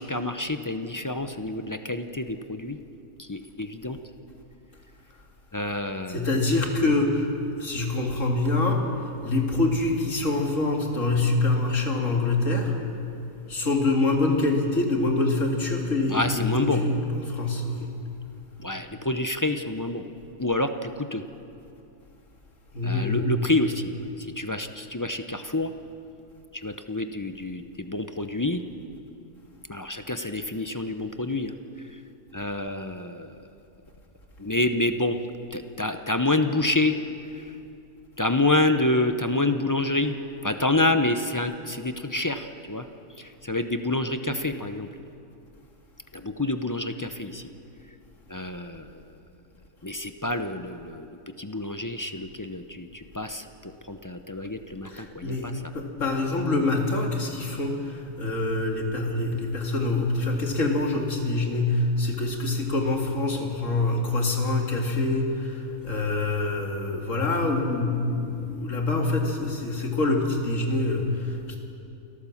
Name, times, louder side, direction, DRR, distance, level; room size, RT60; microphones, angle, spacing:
voice 1, 0.0-2.8 3.2-4.0 5.5-6.3 16.1-16.8 18.6-20.1 20.4-21.2 22.8-25.7 26.5-28.6 29.7-31.5 31.8-32.0 32.3-33.4 34.4-35.2 35.5-37.0 37.3-37.5 38.2-40.1 40.4-42.9 43.2-44.9 46.1-47.5 48.3-49.2 49.8-55.7, left 2 dB, 20° left, 8 dB, 0.5 m, -28 dB
voice 2, 6.1-7.3 7.6-8.9 9.2-12.8 13.5-17.9 22.7-23.3 54.9-71.6, left 2 dB, 65° left, 1 dB, 2.6 m, -25 dB
28.5 x 13.5 x 7.2 m, 2.7 s
omnidirectional pair, 1.4 m